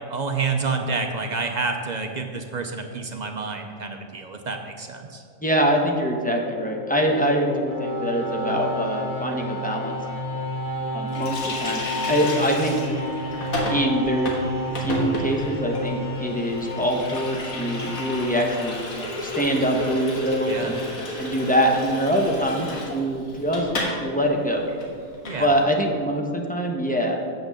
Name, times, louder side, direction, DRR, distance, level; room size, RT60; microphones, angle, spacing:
voice 1, 0.1-5.2 20.4-20.7 25.2-25.6, right 4 dB, 50° right, 4 dB, 0.5 m, -29 dB
voice 2, 5.4-10.0 10.9-11.8 12.1-12.8 13.7-14.3 14.8-18.8 19.2-20.8 21.2-23.6 24.0-24.7 25.4-27.2, equal, 10° left, 1 dB, 0.7 m, -24 dB
sound 1, 6.2-19.2, left 1 dB, 25° left, 2.1 m, -31 dB
Water tap faucet, 11.1-24.0 24.3-24.4 24.7-25.4, left 1 dB, 80° left, 1.9 m, -32 dB
7.9 x 5.9 x 6.6 m, 2.2 s
omnidirectional pair, 1.4 m